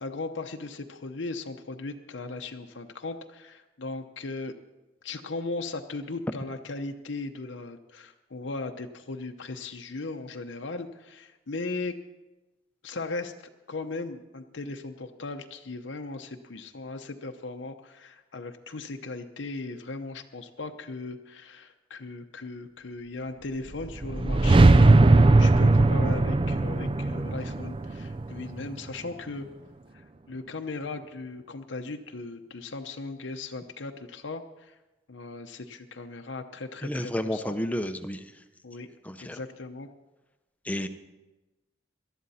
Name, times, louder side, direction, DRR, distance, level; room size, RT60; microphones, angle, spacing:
voice 1, 0.0-4.5 5.0-12.0 12.8-13.3 13.7-29.5 29.9-34.7 35.1-37.5 38.6-38.9 39.2-39.9 40.8-40.9, left 3 dB, 80° left, 5 dB, 0.8 m, -37 dB
sound 1, 23.7-28.9, right 2 dB, 30° right, 0.4 m, -20 dB
voice 2, 36.8-38.3 39.0-39.4 40.6-40.9, equal, 10° left, 8 dB, 0.7 m, -31 dB
18.5 x 12.5 x 4.2 m, 1.1 s
head